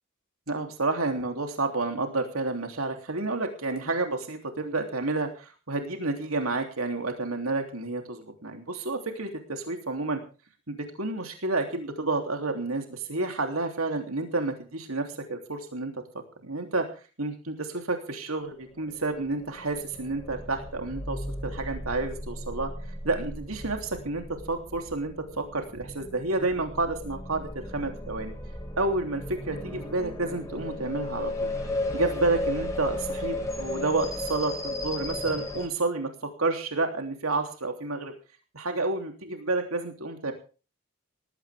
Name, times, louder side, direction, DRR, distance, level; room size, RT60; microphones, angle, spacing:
voice 1, 0.5-10.2 10.7-16.0 16.4-16.9 17.2-28.3 28.8-31.5 31.9-36.1 36.4-38.1 38.5-40.3, right 3 dB, 80° right, 4 dB, 3.3 m, -30 dB
sound 1, 18.8-35.7, left 1 dB, 15° left, 5.6 m, -35 dB
19.0 x 16.5 x 3.6 m, 0.36 s
head